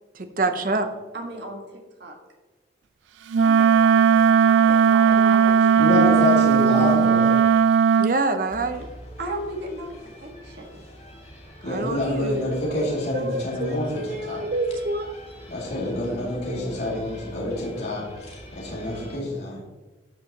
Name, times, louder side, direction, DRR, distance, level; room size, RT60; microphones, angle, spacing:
voice 1, 0.1-0.9 8.0-8.9 11.6-12.9 13.1-15.1, right 2 dB, 50° right, 8 dB, 0.7 m, -27 dB
voice 2, 1.1-1.6 2.0-2.1 3.4-3.9 4.2-5.8 9.2-10.6, right 1 dB, 70° right, 0 dB, 1.6 m, -35 dB
Wind instrument woodwind instrument, 3.3-8.2, right 7 dB, 90° right, 0.3 m, -17 dB
voice 3, 5.7-7.3 11.6-14.4 15.5-18.1 18.5-19.6, left 1 dB, 60° left, -5 dB, 2.5 m, -27 dB
sound 1, 8.5-19.2, equal, 35° left, 2.2 m, -44 dB
12.5 x 6.2 x 2.9 m, 1.2 s
head